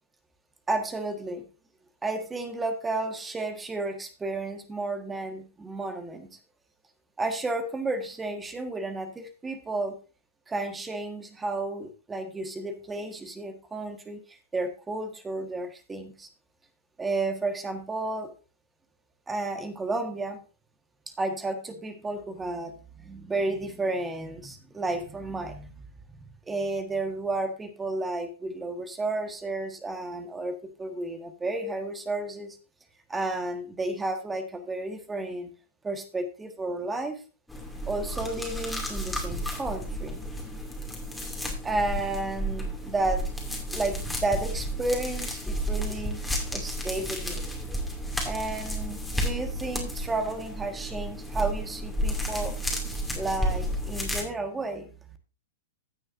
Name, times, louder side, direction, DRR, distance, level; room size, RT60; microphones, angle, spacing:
voice 1, 0.7-1.4 2.0-6.4 7.2-10.0 10.5-16.3 17.0-18.3 19.3-20.4 21.2-25.9 26.2-32.6 33.1-35.5 35.8-37.2 37.9-40.2 41.6-43.2 43.7-46.2 46.5-47.4 48.2-52.5 53.2-54.9, right 2 dB, 15° right, 7 dB, 1.5 m, -32 dB
sound 1, 37.5-54.2, equal, 5° left, 2.6 m, -32 dB
16.0 x 6.3 x 2.6 m, 0.34 s
hypercardioid pair, 110°, 0 cm